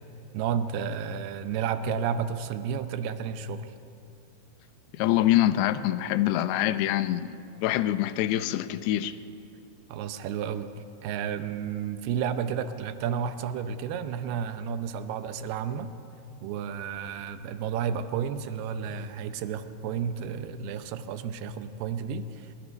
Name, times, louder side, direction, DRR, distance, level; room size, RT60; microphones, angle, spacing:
voice 1, 0.3-3.7 9.9-10.7 11.0-15.9 16.4-22.5, right 7 dB, 80° right, 10 dB, 2.7 m, -32 dB
voice 2, 5.0-7.4 7.6-9.2, left 13 dB, 80° left, 12 dB, 2.7 m, -25 dB
25.5 x 22.0 x 5.2 m, 2.8 s
omnidirectional pair, 4.7 m